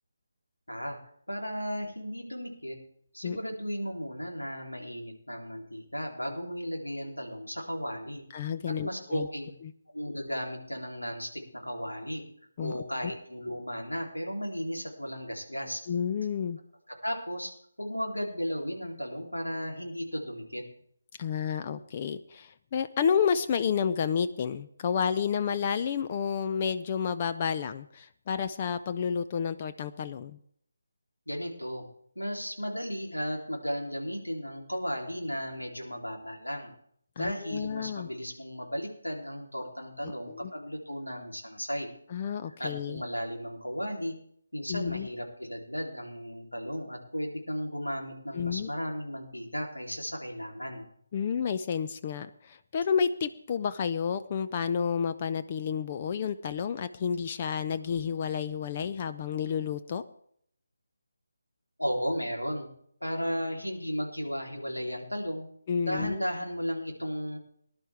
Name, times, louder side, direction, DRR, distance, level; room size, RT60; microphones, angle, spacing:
voice 1, 0.7-1.0 1.3-2.8 3.1-8.2 8.7-9.5 9.9-12.2 12.6-15.8 16.9-17.5 17.8-20.6 31.3-31.8 32.1-36.7 37.2-41.9 42.6-44.2 44.5-50.9 61.8-62.7 63.0-65.5 65.8-67.4, equal, 90° left, 1 dB, 3.4 m, -35 dB
voice 2, 8.3-9.3 12.6-12.8 15.9-16.6 21.2-30.4 37.2-38.1 40.0-40.5 42.1-43.0 44.7-45.1 48.3-48.7 51.1-60.0 65.7-66.2, left 7 dB, 30° left, 10 dB, 0.5 m, -30 dB
19.5 x 11.5 x 3.5 m, 0.66 s
figure-of-eight pair, 150°, 0 cm